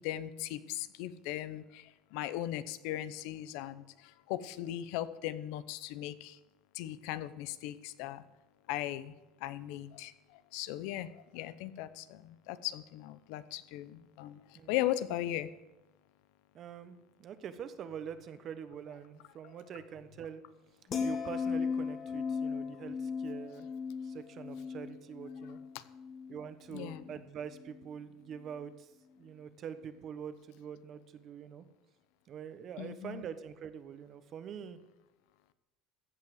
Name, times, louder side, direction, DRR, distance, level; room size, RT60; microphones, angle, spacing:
voice 1, 0.0-6.4 6.7-8.2 8.7-9.2 9.4-15.5 25.7-25.8 26.7-27.0 32.8-33.2, left 13 dB, 75° left, 15 dB, 0.8 m, -38 dB
voice 2, 16.5-20.4 21.0-23.7 24.0-25.6 26.3-28.9 29.2-31.6 32.3-34.8, right 8 dB, 40° right, 11 dB, 1.1 m, -45 dB
sound 1, 20.9-27.2 27.5-27.9, left 5 dB, 35° left, 1.6 m, -37 dB
15.0 x 5.7 x 9.5 m, 1.0 s
cardioid pair, 130°, 0 cm